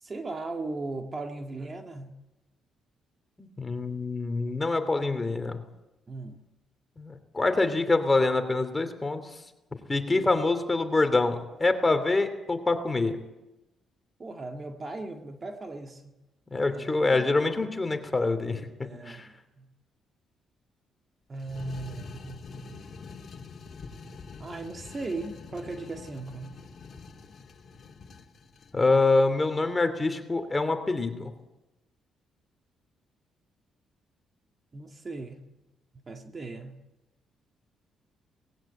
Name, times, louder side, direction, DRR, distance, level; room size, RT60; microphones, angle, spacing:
voice 1, 0.0-2.1 6.1-6.4 14.2-16.1 16.7-17.4 18.8-19.7 21.3-22.8 24.4-26.5 34.7-35.4 36.1-36.8, right 3 dB, 30° right, 4 dB, 2.0 m, -38 dB
voice 2, 3.4-5.6 7.0-9.2 9.9-13.2 16.5-18.7 19.0-19.3 28.7-31.3, left 3 dB, 20° left, 7 dB, 2.9 m, -25 dB
sound 1, 21.4-28.8, left 4 dB, 50° left, 2.7 m, -45 dB
19.5 x 16.0 x 8.9 m, 1.0 s
cardioid pair, 90°, 0 cm